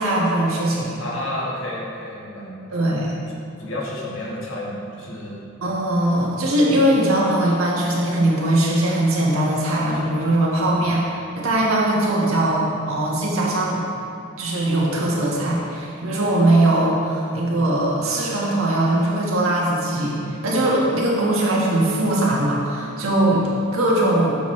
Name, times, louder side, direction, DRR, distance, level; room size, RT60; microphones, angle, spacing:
voice 1, 0.0-0.9 2.7-3.1 5.6-11.0 11.4-13.8 14.4-23.4 23.7-24.4, right 1 dB, 85° right, -4 dB, 1.4 m, -20 dB
voice 2, 1.0-2.9 3.6-5.5 10.8-10.9, left 1 dB, 65° left, -4 dB, 1.3 m, -31 dB
7.1 x 6.0 x 3.2 m, 2.6 s
head